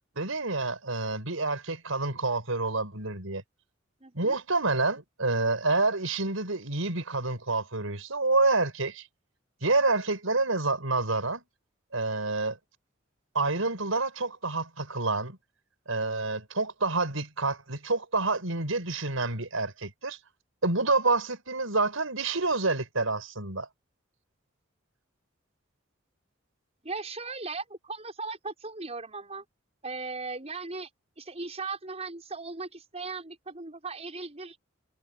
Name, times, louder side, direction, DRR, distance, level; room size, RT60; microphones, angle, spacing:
voice 1, 0.2-3.4 4.1-9.1 9.6-11.4 11.9-12.6 13.3-15.4 15.9-20.2 20.6-23.7, right 3 dB, 85° right, 5.2 m, -28 dB
voice 2, 4.0-4.4 26.8-29.4 29.8-30.9 31.2-34.6, right 3 dB, 30° right, 6.0 m, -38 dB
head